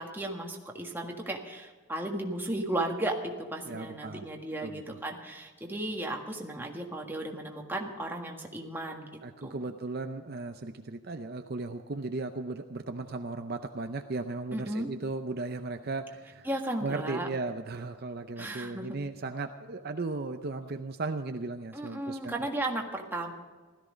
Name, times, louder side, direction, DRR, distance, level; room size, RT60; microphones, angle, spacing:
voice 1, 0.0-9.6 14.5-14.9 16.4-17.3 18.4-19.0 21.7-23.3, right 1 dB, 10° right, 1 dB, 1.6 m, -35 dB
voice 2, 3.7-4.3 4.6-5.0 9.2-16.5 16.8-22.4, right 3 dB, 45° right, 7 dB, 0.6 m, -36 dB
16.5 x 13.5 x 5.2 m, 1.4 s
head